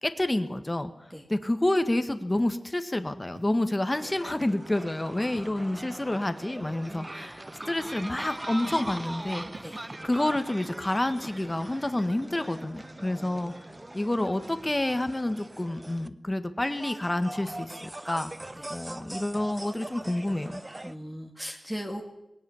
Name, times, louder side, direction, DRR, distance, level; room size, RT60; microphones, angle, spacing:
voice 1, 0.0-0.9 1.3-9.4 10.0-13.5 13.9-18.3 18.7-20.6, left 1 dB, 20° left, 9 dB, 1.7 m, -29 dB
Walk footsteps, 2.3-2.7 3.3-3.6 4.4-4.7 5.4-5.7 6.6-6.9 7.8-8.3 8.7-9.0 9.5-10.1 11.0-11.5, right 3 dB, 75° right, 2.1 m, -52 dB
sound 1, 3.9-16.1 16.6-20.9, right 1 dB, 20° right, 0.9 m, -41 dB
voice 2, 5.2-5.9 9.6-9.8 13.1-13.5 18.5-18.7 20.8-22.0, equal, ahead, 2 dB, 2.3 m, -40 dB
20.5 x 18.0 x 7.3 m, 0.91 s
wide cardioid pair, 70°, 0 cm